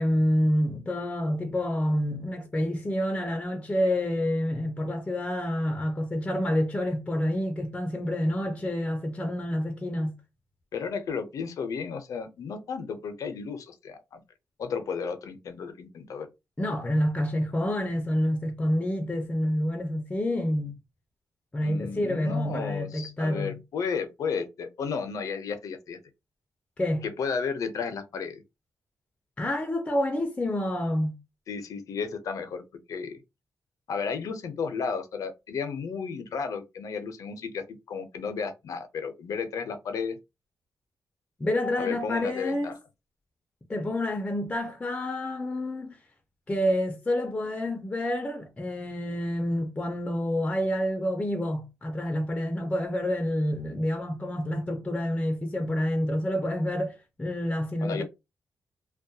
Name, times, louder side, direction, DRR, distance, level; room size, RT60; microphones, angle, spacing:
voice 1, 0.0-10.2 16.6-20.8 21.5-23.6 26.8-27.1 29.4-31.2 41.4-42.8 43.7-46.0 46.5-58.0, left 1 dB, 20° left, 0.5 m, -28 dB
voice 2, 10.7-14.2 14.6-16.3 21.6-26.0 27.0-28.4 31.5-33.2 33.9-40.2 41.8-42.7 57.8-58.0, left 5 dB, 75° left, 0.5 m, -33 dB
2.2 x 2.1 x 2.7 m
cardioid pair, 110°, 6 cm